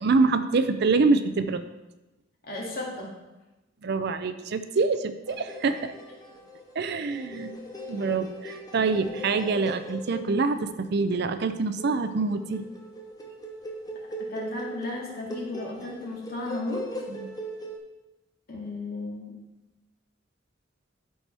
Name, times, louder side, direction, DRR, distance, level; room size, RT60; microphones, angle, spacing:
voice 1, 0.0-1.6 3.8-5.9 6.8-7.5 7.9-12.6 17.1-17.3, right 4 dB, 60° right, 11 dB, 0.5 m, -25 dB
voice 2, 2.4-3.1 14.2-16.9 18.5-19.4, left 2 dB, 55° left, -3 dB, 2.1 m, -34 dB
sound 1, 5.3-17.8, equal, 20° left, 0.9 m, -40 dB
12.0 x 4.4 x 3.4 m, 1.0 s
head